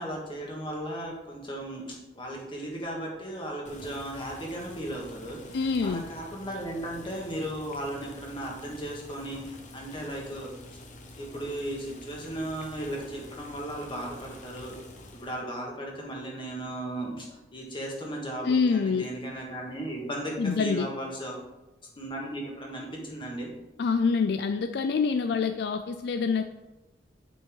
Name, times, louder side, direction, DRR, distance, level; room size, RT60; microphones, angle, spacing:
voice 1, 0.0-10.5 11.2-14.8 15.1-21.4 22.0-23.5, right 1 dB, 30° left, -2 dB, 2.0 m, -36 dB
Boiling, 3.6-15.4, left 1 dB, 45° left, 1.1 m, -47 dB
voice 2, 5.5-6.0 18.4-19.1 20.4-20.9 23.8-26.4, left 5 dB, 65° left, 8 dB, 0.4 m, -26 dB
8.3 x 6.8 x 3.9 m, 1.1 s
head